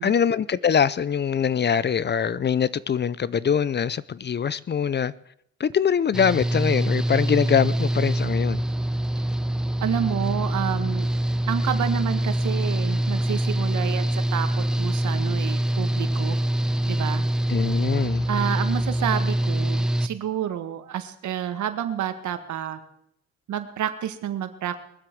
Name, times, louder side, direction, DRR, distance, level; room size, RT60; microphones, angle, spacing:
voice 1, 0.0-5.1 5.6-8.6 17.5-18.3, left 7 dB, 35° left, 0.5 m, -23 dB
Engine / Mechanical fan, 6.1-20.1, right 1 dB, ahead, 0.7 m, -24 dB
voice 2, 9.8-11.1 11.5-16.4 16.9-17.2 18.3-22.8 23.5-24.8, right 10 dB, 70° right, 1.7 m, -29 dB
21.5 x 7.7 x 7.7 m
cardioid pair, 90°, 30 cm